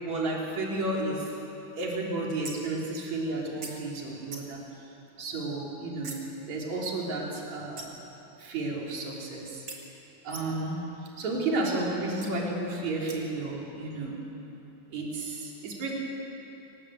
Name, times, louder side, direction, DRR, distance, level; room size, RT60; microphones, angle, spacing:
voice 1, 0.0-1.3 1.7-4.6 5.2-6.1 6.5-7.9 8.4-9.7 10.2-10.8 11.2-14.2 14.9-15.9, right 2 dB, 55° right, -3 dB, 4.9 m, -32 dB
sound 1, 2.4-2.8 3.6-3.7 4.3-4.6 6.0-6.3 7.8-8.1 9.7-9.8 10.3-10.7 12.2-12.3 13.1-13.4, right 3 dB, 40° right, 3.1 m, -42 dB
27.5 x 19.5 x 8.1 m, 3.0 s
omnidirectional pair, 3.9 m